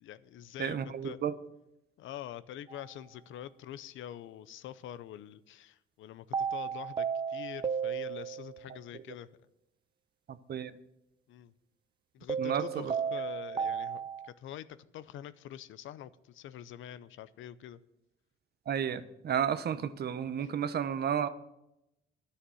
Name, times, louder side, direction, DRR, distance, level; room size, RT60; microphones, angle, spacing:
voice 1, 0.0-1.2 2.0-9.3 11.3-11.5 12.1-17.8 20.4-20.5, left 11 dB, 80° left, 16 dB, 0.6 m, -45 dB
voice 2, 0.6-1.3 10.3-10.7 12.4-12.9 13.5-13.7 18.7-21.3, right 8 dB, 55° right, 13 dB, 0.9 m, -32 dB
sound 1, 2.7-2.9 6.3-8.7 12.3-14.3, right 7 dB, 25° right, 0.4 m, -34 dB
11.0 x 6.6 x 9.1 m, 0.87 s
cardioid pair, 90°, 20 cm